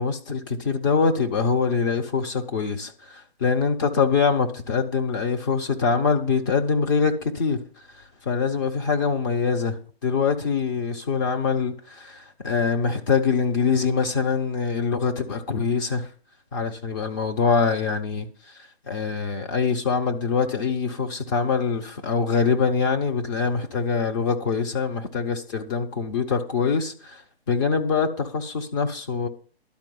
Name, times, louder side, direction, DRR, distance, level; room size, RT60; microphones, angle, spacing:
voice 1, 0.0-7.6 8.2-16.1 16.5-18.3 18.9-27.2 27.5-29.3, left 5 dB, 20° left, 0.7 m, -24 dB
12.0 x 4.6 x 7.7 m
figure-of-eight pair, 145°, 32 cm